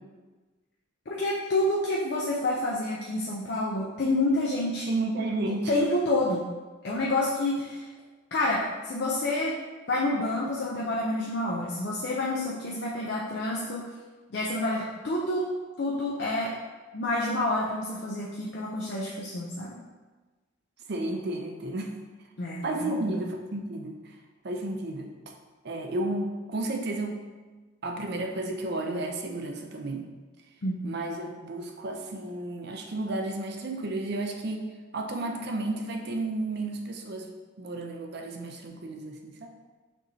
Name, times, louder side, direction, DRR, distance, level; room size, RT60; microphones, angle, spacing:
voice 1, 1.1-4.9 5.7-6.4 6.8-7.9 8.3-9.5 9.9-13.9 14.3-15.5 15.8-16.5 16.9-19.8 22.4-23.2 30.6-30.8, left 1 dB, 50° left, -4 dB, 0.5 m, -28 dB
voice 2, 4.9-5.7 20.9-22.0 22.6-24.2 24.4-25.1 25.6-27.2 27.8-30.1 30.8-34.7 34.9-37.3 37.6-39.5, right 2 dB, 50° right, 3 dB, 0.5 m, -32 dB
6.1 x 3.1 x 2.7 m, 1.3 s
head